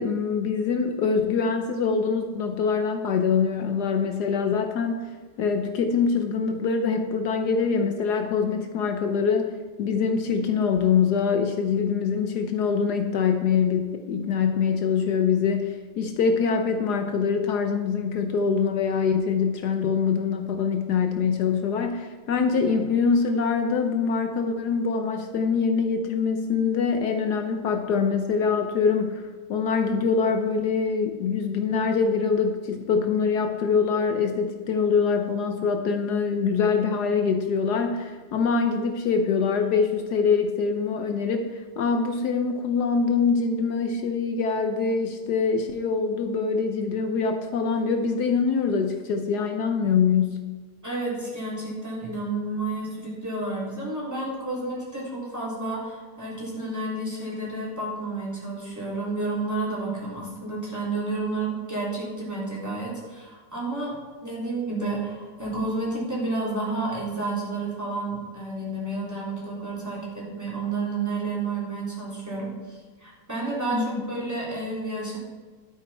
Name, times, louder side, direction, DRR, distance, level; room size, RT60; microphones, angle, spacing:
voice 1, 0.0-5.0 5.4-9.5 9.8-50.4 73.7-73.9, left 5 dB, 75° left, 5 dB, 1.3 m, -24 dB
voice 2, 50.8-75.2, right 2 dB, 10° right, -6 dB, 3.5 m, -31 dB
12.5 x 8.9 x 4.3 m, 1.4 s
omnidirectional pair, 1.8 m